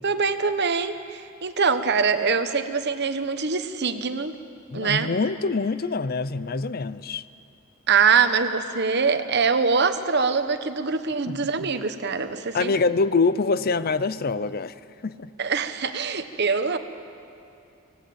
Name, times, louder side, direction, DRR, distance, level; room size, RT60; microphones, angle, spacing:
voice 1, 0.0-4.3 4.7-5.1 7.9-12.7 15.4-16.8, right 5 dB, 50° right, 9 dB, 1.1 m, -23 dB
voice 2, 4.7-7.3 11.3-11.7 12.5-14.7 15.0-15.3, left 4 dB, 45° left, 15 dB, 0.6 m, -25 dB
25.0 x 18.0 x 8.7 m, 2.7 s
head